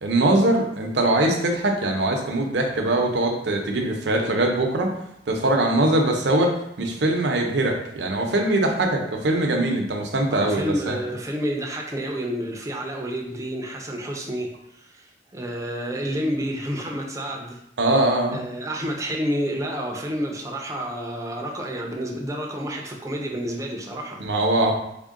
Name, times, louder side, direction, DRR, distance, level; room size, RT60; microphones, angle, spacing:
voice 1, 0.0-4.9 5.3-11.0 17.8-18.4 24.2-24.7, right 1 dB, 70° right, 2 dB, 0.6 m, -22 dB
voice 2, 10.3-17.6 18.3-24.2, equal, 20° right, 0 dB, 0.5 m, -29 dB
3.6 x 2.1 x 3.6 m, 0.77 s
head